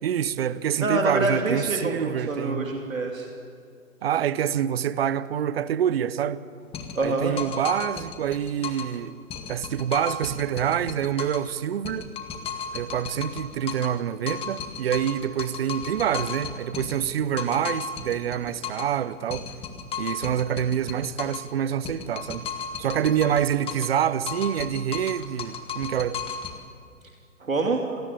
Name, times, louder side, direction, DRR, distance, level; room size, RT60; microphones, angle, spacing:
voice 1, 0.0-2.7 4.0-6.4 7.0-9.2 9.5-12.1 12.7-19.5 20.0-22.5 22.8-26.2, right 9 dB, 45° right, 1.2 m, -26 dB
voice 2, 0.8-3.3 7.0-7.3 27.4-28.0, right 2 dB, 75° right, 2.9 m, -26 dB
sound 1, 6.7-9.0 9.3-11.5 11.8-14.0 14.3-19.0 19.3-21.5 21.8-24.0 24.3-26.6, left 6 dB, 15° left, 2.0 m, -35 dB
28.5 x 22.5 x 8.7 m
figure-of-eight pair, 120°, 41 cm